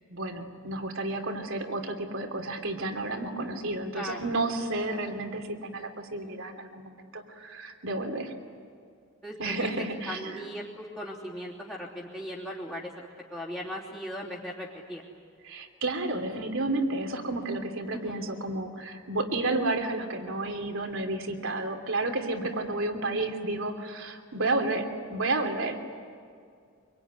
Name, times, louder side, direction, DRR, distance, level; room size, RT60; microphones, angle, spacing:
voice 1, 0.1-8.3 9.4-10.5 15.4-25.9, right 2 dB, 75° right, 4 dB, 3.0 m, -31 dB
voice 2, 3.9-4.2 9.2-9.7 10.1-15.0 17.9-18.3, equal, 10° left, -7 dB, 3.2 m, -38 dB
25.5 x 24.0 x 9.7 m, 2.3 s
head